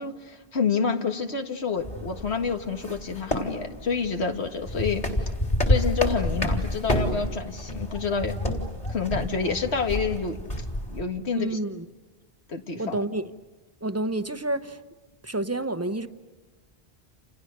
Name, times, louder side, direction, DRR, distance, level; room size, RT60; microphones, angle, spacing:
voice 1, 0.0-5.0 5.7-8.3 8.9-10.4 10.9-11.6 12.5-13.0, left 5 dB, 90° left, 5 dB, 2.1 m, -28 dB
sound 1, 1.8-11.0, left 1 dB, 45° left, 3.8 m, -29 dB
voice 2, 11.3-11.9 12.8-13.2 13.8-14.8 15.2-16.1, right 2 dB, 15° right, 10 dB, 0.9 m, -29 dB
30.0 x 29.0 x 6.7 m, 1.2 s
omnidirectional pair, 1.1 m